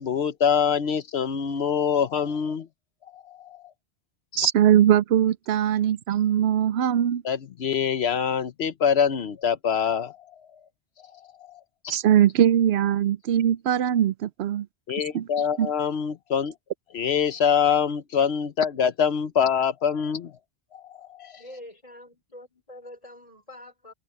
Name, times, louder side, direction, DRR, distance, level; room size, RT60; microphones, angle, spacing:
voice 1, 0.0-2.7 3.1-3.7 4.3-4.5 7.2-10.4 11.0-12.0 14.9-16.5 16.9-20.3 20.7-21.4, left 7 dB, 80° left, 1.1 m, -25 dB
voice 2, 4.4-7.2 11.9-14.7 15.1-15.2 15.6-15.7, right 10 dB, 85° right, 0.9 m, -21 dB
voice 3, 21.3-23.9, left 1 dB, 35° left, 5.7 m, -45 dB
omnidirectional pair, 1.1 m